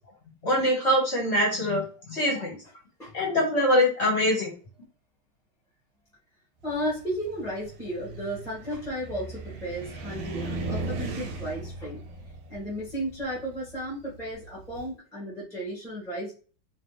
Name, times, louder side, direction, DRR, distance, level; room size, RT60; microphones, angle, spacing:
voice 1, 0.4-2.5 3.1-4.5, equal, 40° left, -2 dB, 1.3 m, -24 dB
voice 2, 6.6-12.0 12.5-16.3, equal, ahead, -6 dB, 1.1 m, -34 dB
Car, 6.7-14.9, right 2 dB, 90° right, 1.6 m, -37 dB
3.2 x 3.0 x 3.2 m, 0.37 s
omnidirectional pair, 2.3 m